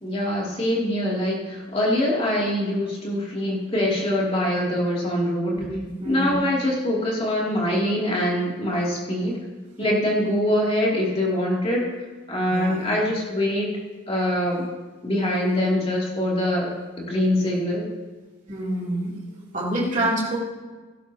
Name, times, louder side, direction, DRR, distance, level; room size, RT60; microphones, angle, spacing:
voice 1, 0.0-5.6 6.0-9.4 9.8-12.0 12.3-13.7 14.1-14.7 15.0-16.7 17.0-17.9, left 1 dB, 30° left, -4 dB, 2.5 m, -24 dB
voice 2, 5.5-6.3 12.5-12.9 18.5-19.2 19.5-20.4, right 1 dB, 40° right, -5 dB, 2.8 m, -27 dB
17.5 x 11.0 x 2.8 m, 1.3 s
head